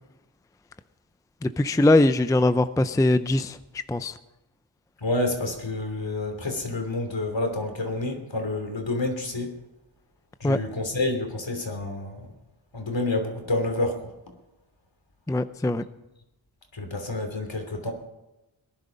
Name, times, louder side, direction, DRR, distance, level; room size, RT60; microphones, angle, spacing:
voice 1, 1.4-3.6 3.9-4.2 10.4-10.6 15.3-15.8, left 2 dB, 5° left, 12 dB, 0.5 m, -21 dB
voice 2, 5.0-9.5 10.4-12.3 12.7-14.0 16.7-17.9, left 2 dB, 65° left, 4 dB, 3.1 m, -28 dB
19.0 x 11.0 x 5.3 m, 0.95 s
wide cardioid pair, 60°, 49 cm